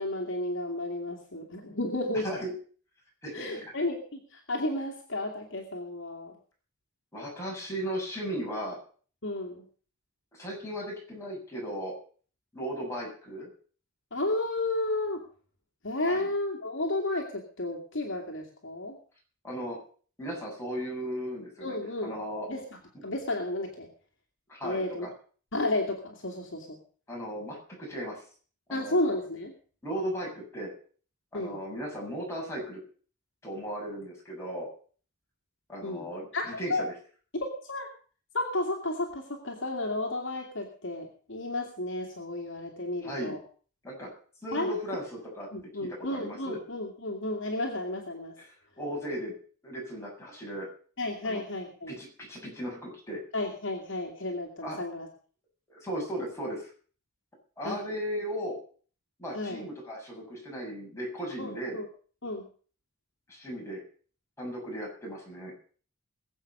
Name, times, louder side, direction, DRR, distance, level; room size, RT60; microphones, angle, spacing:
voice 1, 0.0-2.3 3.3-6.4 9.2-9.6 14.1-15.2 15.8-19.0 21.6-22.2 22.5-22.6 23.0-23.9 24.6-25.1 25.5-26.8 28.7-29.5 31.3-31.6 35.8-36.1 36.3-36.8 37.3-37.9 38.3-43.4 44.5-44.7 45.5-48.4 51.0-52.0 53.3-55.1 57.6-57.8 59.3-59.6 61.4-61.9 62.2-62.5, left 2 dB, 55° left, 1 dB, 2.3 m, -32 dB
voice 2, 3.2-3.7 7.1-8.8 10.3-11.9 12.5-13.5 16.1-16.3 19.4-19.8 20.2-22.5 24.5-25.1 27.1-28.2 28.7-29.0 29.8-30.7 31.3-32.8 33.4-34.7 35.7-36.9 43.0-43.4 43.8-44.1 44.4-45.5 45.8-46.6 48.4-48.5 48.8-49.3 49.6-50.7 51.2-51.4 51.9-53.2 54.6-54.8 55.7-56.7 57.6-58.6 59.2-61.8 63.3-63.8 64.4-65.5, equal, 15° left, -3 dB, 7.0 m, -36 dB
21.5 x 7.9 x 5.5 m, 0.43 s
head